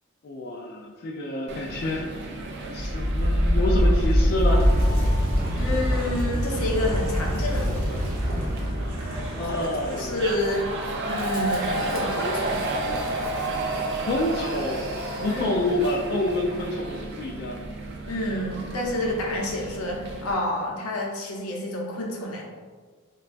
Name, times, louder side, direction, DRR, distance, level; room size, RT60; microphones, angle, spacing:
voice 1, 0.2-2.1 2.7-4.7 9.3-10.2 14.1-14.9 15.2-17.7, left 1 dB, 45° left, -1 dB, 0.3 m, -28 dB
sound 1, 1.5-20.3, right 2 dB, 50° right, 0.4 m, -33 dB
Wind, 2.7-15.7, equal, 90° right, 0.8 m, -26 dB
voice 2, 5.5-8.0 9.4-12.6 15.3-15.6 18.0-22.4, left 1 dB, 85° left, -2 dB, 0.7 m, -29 dB
3.9 x 2.2 x 2.5 m, 1.5 s
head